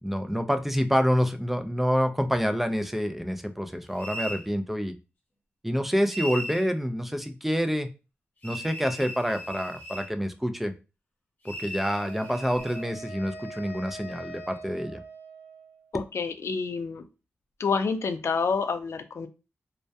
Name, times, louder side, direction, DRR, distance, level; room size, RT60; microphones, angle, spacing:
voice 1, 0.0-4.9 5.6-7.9 8.4-10.7 11.4-15.0, equal, 5° right, 8 dB, 0.4 m, -27 dB
sound 1, 4.0-4.4 6.1-6.7 8.4-10.1 11.4-12.8, equal, 40° left, 0.9 m, -37 dB
Wind instrument woodwind instrument, 11.8-15.9, right 2 dB, 55° right, 0.9 m, -43 dB
voice 2, 15.9-17.0 17.6-19.3, left 5 dB, 70° left, 9 dB, 0.3 m, -28 dB
2.2 x 2.1 x 2.6 m, 0.30 s
cardioid pair, 45°, 5 cm